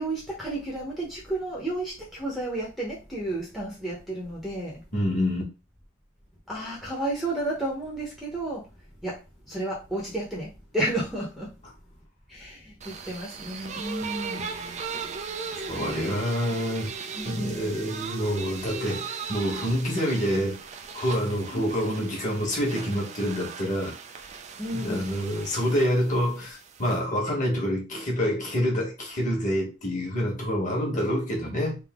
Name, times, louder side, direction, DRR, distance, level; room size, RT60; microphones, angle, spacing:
voice 1, 0.0-4.8 6.5-8.7 9.0-11.5 12.3-14.5 15.7-16.2 17.1-17.8 21.5-21.7 24.6-25.1, right 1 dB, ahead, 0.9 m, -32 dB
voice 2, 4.9-5.4 15.6-20.6 20.9-23.9 24.8-31.8, equal, 40° left, 1.5 m, -27 dB
sound 1, 12.8-27.0, right 5 dB, 35° right, 0.4 m, -38 dB
3.6 x 2.7 x 3.6 m
head